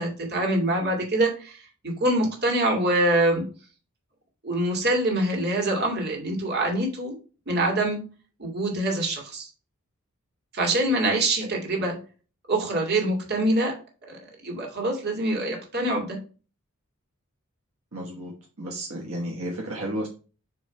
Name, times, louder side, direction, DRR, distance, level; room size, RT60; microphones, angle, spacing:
voice 1, 0.0-3.4 4.4-7.1 7.5-8.0 8.4-9.5 10.5-12.0 12.5-13.8 14.1-16.2, right 1 dB, 50° right, 0 dB, 2.2 m, -25 dB
voice 2, 17.9-20.1, equal, 75° right, -2 dB, 1.3 m, -33 dB
6.9 x 3.1 x 4.3 m, 0.35 s
head